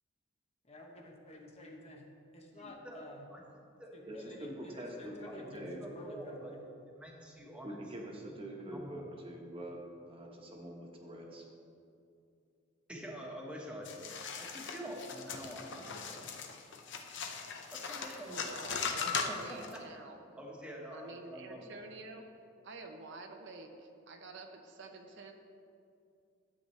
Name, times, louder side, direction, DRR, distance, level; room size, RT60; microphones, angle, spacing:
voice 1, 0.7-3.3 3.9-6.6, left 1 dB, 35° left, 1 dB, 0.9 m, -50 dB
voice 2, 2.5-3.0 3.3-3.4 3.8-4.1 5.2-7.8 8.2-8.3 8.7-9.0 12.9-14.0 14.4-16.3 17.7-18.4 19.0-20.1 20.4-21.7, equal, 5° right, -2 dB, 1.3 m, -47 dB
voice 3, 4.1-5.8 7.6-11.4, right 1 dB, 30° right, 0 dB, 1.2 m, -45 dB
sound 1, 13.9-19.8, left 5 dB, 65° left, 0.7 m, -39 dB
voice 4, 18.2-20.2 20.9-22.2 22.6-25.3, right 3 dB, 65° right, 3 dB, 0.8 m, -48 dB
12.0 x 7.7 x 3.2 m, 2.5 s
head